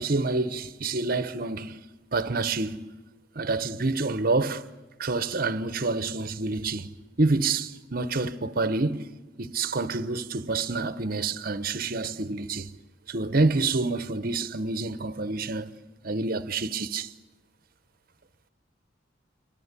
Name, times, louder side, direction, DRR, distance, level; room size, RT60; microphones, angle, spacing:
voice 1, 0.0-1.9 2.1-2.9 3.4-4.6 5.0-9.1 9.4-12.7 13.1-15.8 16.0-17.1, right 3 dB, 45° right, 1.0 m, -28 dB
28.5 x 23.5 x 8.3 m
head